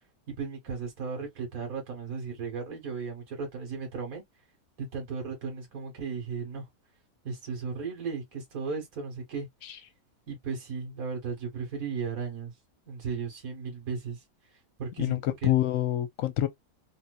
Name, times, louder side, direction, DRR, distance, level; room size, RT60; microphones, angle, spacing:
voice 1, 0.3-4.2 4.8-6.6 7.2-9.5 10.3-12.5 12.9-14.2 14.8-15.5, right 5 dB, 70° right, 2.0 m, -35 dB
voice 2, 15.0-16.5, left 14 dB, 70° left, 1.1 m, -27 dB
3.6 x 2.8 x 2.2 m
omnidirectional pair, 1.5 m